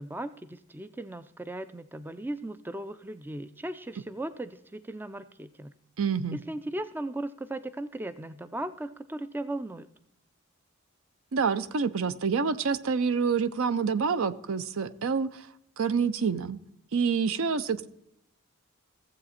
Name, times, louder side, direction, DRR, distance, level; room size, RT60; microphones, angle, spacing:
voice 1, 0.0-5.7 6.3-9.9, right 1 dB, 10° right, 13 dB, 0.3 m, -37 dB
voice 2, 6.0-6.4 11.3-15.5 15.8-16.6 16.9-17.9, right 5 dB, 65° right, 14 dB, 0.6 m, -27 dB
15.5 x 7.6 x 4.2 m, 0.81 s
head